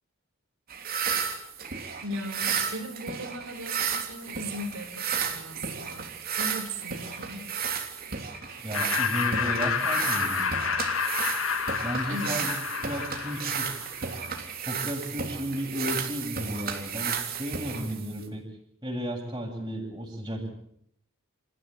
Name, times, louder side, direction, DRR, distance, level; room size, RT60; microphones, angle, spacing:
sound 1, 0.7-18.3, right 6 dB, 45° right, 3.4 m, -33 dB
voice 1, 2.0-7.4 12.1-12.5, right 1 dB, 85° right, 3 dB, 4.2 m, -38 dB
voice 2, 8.6-10.5 11.8-12.5 12.8-13.8 14.7-18.4 18.8-20.5, equal, 20° right, 0 dB, 7.7 m, -33 dB
Laughter, 8.7-14.0, left 6 dB, 85° left, 3.1 m, -29 dB
28.5 x 15.5 x 9.2 m, 0.73 s
head